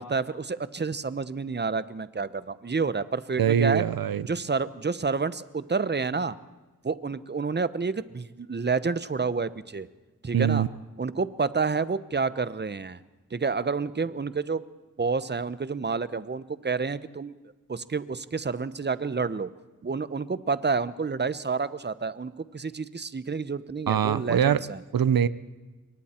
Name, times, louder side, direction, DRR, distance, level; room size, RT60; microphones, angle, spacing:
voice 1, 0.0-3.8 4.3-6.4 6.8-9.9 10.2-10.6 11.0-13.0 13.3-14.6 15.0-17.3 17.7-19.5 19.8-24.8, right 4 dB, 30° right, 16 dB, 0.8 m, -29 dB
voice 2, 3.4-4.3 10.3-10.7 23.9-24.6 24.9-25.3, right 9 dB, 85° right, 17 dB, 0.7 m, -23 dB
28.0 x 23.0 x 4.4 m, 1.2 s
wide cardioid pair, 95°, 34 cm